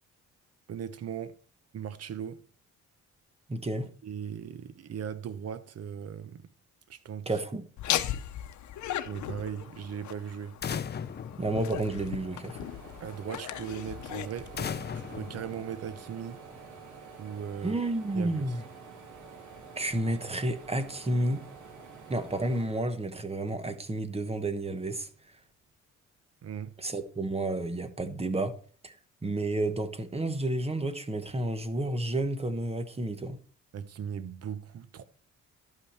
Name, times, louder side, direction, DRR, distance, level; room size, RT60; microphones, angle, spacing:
voice 1, 0.7-1.4 1.7-2.4 4.0-6.5 6.9-7.3 9.0-10.6 13.0-16.4 17.2-17.8 18.1-18.4 26.4-26.7 33.7-35.0, right 8 dB, 55° right, 0.9 m, -38 dB
voice 2, 3.5-3.9 7.3-7.7 11.4-12.6 17.6-18.7 19.8-21.5 22.1-25.4 26.8-28.6 28.8-29.0 29.2-33.4, right 2 dB, 20° right, 1.1 m, -31 dB
Laughter, 7.8-15.4, left 11 dB, 70° left, 0.8 m, -37 dB
sound 1, 10.6-12.4 14.6-16.3, left 7 dB, 35° left, 0.6 m, -37 dB
sound 2, 11.0-23.6 24.1-25.2, right 5 dB, 70° right, 2.9 m, -49 dB
12.0 x 5.5 x 4.3 m
cardioid pair, 90°, 30 cm